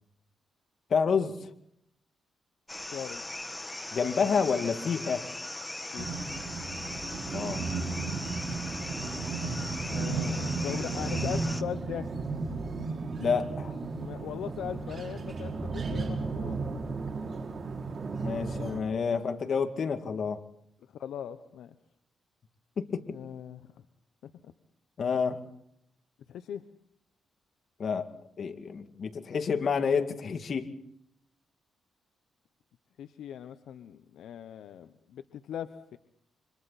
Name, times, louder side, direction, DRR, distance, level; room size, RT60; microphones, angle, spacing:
voice 1, 0.9-1.5 3.9-5.3 7.3-7.7 13.2-13.8 18.2-20.4 22.8-23.0 25.0-25.4 27.8-28.1 28.4-30.7, left 6 dB, 55° left, 6 dB, 2.3 m, -29 dB
sound 1, 2.7-11.6, left 1 dB, 15° left, 1.4 m, -39 dB
voice 2, 2.9-3.2 5.9-6.1 9.8-12.1 14.0-16.6 21.0-21.7 23.1-23.7 24.2-24.5 26.3-26.6 33.0-36.0, left 9 dB, 80° left, 10 dB, 0.9 m, -39 dB
sound 2, 6.0-18.8, right 3 dB, 45° right, 5.4 m, -34 dB
30.0 x 26.0 x 4.3 m, 0.74 s
cardioid pair, 85°, 0 cm